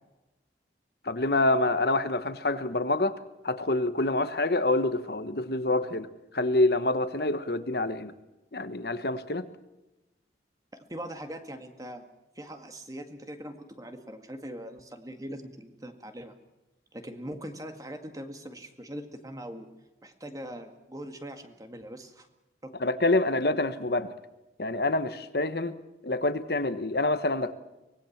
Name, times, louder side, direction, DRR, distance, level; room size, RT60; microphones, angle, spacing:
voice 1, 1.0-3.1 3.4-8.1 8.5-9.5 22.8-24.1 24.6-25.8 26.0-27.5, left 2 dB, 60° left, 11 dB, 1.2 m, -27 dB
voice 2, 10.7-12.0 12.4-16.3 16.9-19.7 20.0-22.3 22.6-22.7, equal, 20° right, 6 dB, 2.0 m, -41 dB
24.5 x 19.5 x 7.3 m, 1.0 s
head